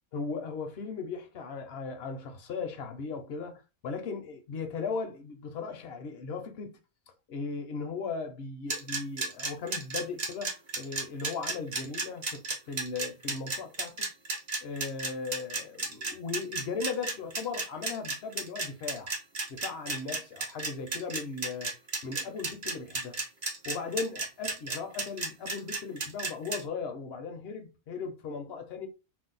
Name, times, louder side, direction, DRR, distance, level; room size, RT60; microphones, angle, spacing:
voice 1, 0.1-6.7 7.3-14.1 14.6-19.1 19.5-21.7 22.0-23.2 23.7-28.9, left 4 dB, 60° left, 0.7 m, -37 dB
sound 1, 8.7-26.6, right 3 dB, 40° right, 0.6 m, -33 dB
2.6 x 2.0 x 3.8 m
omnidirectional pair, 1.5 m